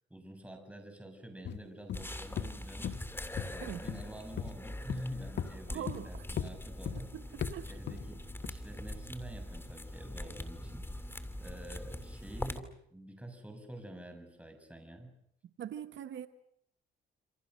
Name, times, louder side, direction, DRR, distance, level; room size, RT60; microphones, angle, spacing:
voice 1, 0.1-3.0 3.4-7.2 7.7-15.1, equal, 5° right, 6 dB, 7.2 m, -47 dB
sound 1, 1.4-1.6 1.9-2.1 2.4-2.5 2.8-3.0 3.4-3.5 3.9-4.1 4.4-4.5 4.9-5.0 5.4-5.5 5.9-6.0 6.4-6.5 6.9-7.0 7.4-7.5 7.9-8.1 8.4-8.5, left 9 dB, 60° left, 1.5 m, -36 dB
sound 2, 1.9-12.6, left 1 dB, 10° left, 2.9 m, -43 dB
voice 2, 5.7-6.2 7.1-7.7 15.6-16.3, right 10 dB, 70° right, 9 dB, 1.4 m, -42 dB
28.0 x 27.0 x 6.5 m, 0.73 s
cardioid pair, 90°, 20 cm